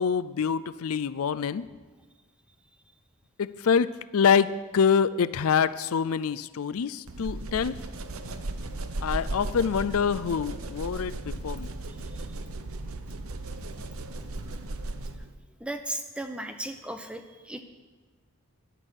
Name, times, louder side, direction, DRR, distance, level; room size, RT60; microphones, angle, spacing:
voice 1, 0.0-1.6 3.4-7.8 9.0-11.7, left 6 dB, 75° left, 15 dB, 0.4 m, -26 dB
sound 1, 7.1-15.3, right 2 dB, 70° right, 0.9 m, -36 dB
voice 2, 11.8-12.2 15.6-17.6, right 1 dB, 5° right, 7 dB, 0.7 m, -36 dB
13.0 x 10.5 x 6.5 m, 1.3 s
head